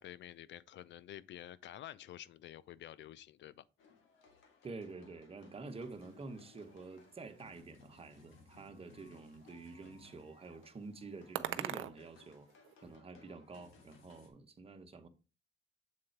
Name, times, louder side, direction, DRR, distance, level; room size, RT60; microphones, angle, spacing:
voice 1, 0.0-3.6, left 12 dB, 65° left, 0.5 m, -50 dB
sound 1, 3.8-14.3, left 3 dB, 85° left, 1.5 m, -63 dB
voice 2, 4.6-12.5 12.8-15.1, right 3 dB, 30° right, 1.1 m, -48 dB
sound 2, 5.7-13.0, right 13 dB, 85° right, 0.5 m, -48 dB
7.5 x 3.8 x 4.5 m
cardioid pair, 90°, 20 cm